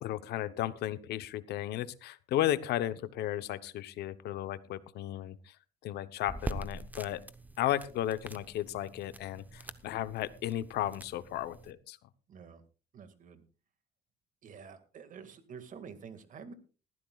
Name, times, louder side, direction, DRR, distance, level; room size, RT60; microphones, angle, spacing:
voice 1, 0.0-5.6 5.8-7.2 7.6-12.0, left 13 dB, 75° left, 13 dB, 0.9 m, -34 dB
sound 1, 6.2-11.7, right 1 dB, 10° right, 0.9 m, -44 dB
voice 2, 12.3-12.6 12.9-13.4 14.4-16.5, right 6 dB, 50° right, 10 dB, 2.0 m, -48 dB
19.5 x 14.0 x 2.4 m, 0.35 s
cardioid pair, 110°, 17 cm